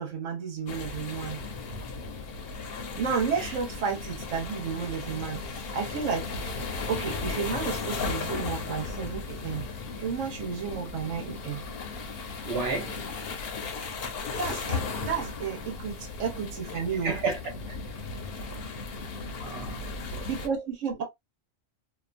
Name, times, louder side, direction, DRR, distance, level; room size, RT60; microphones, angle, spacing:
voice 1, 0.0-1.4 2.9-6.3 6.9-9.7 10.0-11.6 14.4-17.2 20.2-21.0, right 6 dB, 75° right, 1.2 m, -32 dB
sound 1, 0.7-20.5, left 4 dB, 60° left, 0.8 m, -36 dB
voice 2, 12.5-12.9 16.7-17.5 19.4-20.3, right 4 dB, 60° right, 0.9 m, -32 dB
2.7 x 2.3 x 2.4 m
omnidirectional pair, 1.3 m